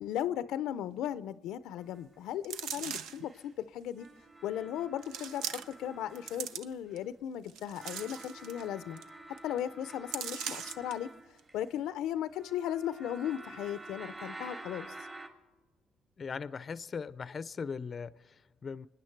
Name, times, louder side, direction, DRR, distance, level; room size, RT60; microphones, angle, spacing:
voice 1, 0.0-4.1 4.4-9.0 9.4-11.1 11.5-14.9, left 10 dB, 90° left, 0.5 m, -36 dB
sound 1, 1.8-3.5 3.9-6.9 7.7-11.9 12.3-15.3, right 2 dB, 30° right, 2.5 m, -49 dB
sound 2, 2.4-3.3 4.0-4.1 5.0-5.9 6.1-7.0 7.5-8.6 9.0-9.1 9.4-9.6 10.1-10.9 11.4-11.5, right 8 dB, 90° right, 0.6 m, -40 dB
voice 2, 16.2-18.9, left 5 dB, 40° left, 0.5 m, -39 dB
25.5 x 10.0 x 4.6 m
cardioid pair, 90°, 0 cm